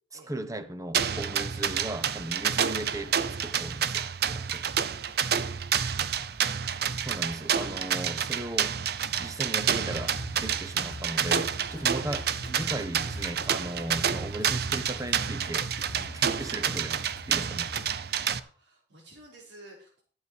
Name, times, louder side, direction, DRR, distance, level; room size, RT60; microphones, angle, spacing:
voice 1, 0.1-3.2 3.4-4.7 7.0-8.8 9.2-17.7, right 1 dB, 20° right, 1.0 m, -37 dB
sound 1, 0.9-18.4, right 8 dB, 60° right, 0.6 m, -29 dB
sound 2, 9.9-18.0, left 2 dB, 45° left, 0.6 m, -45 dB
voice 2, 18.4-20.0, right 1 dB, 80° right, 4.5 m, -53 dB
12.5 x 8.4 x 4.6 m
head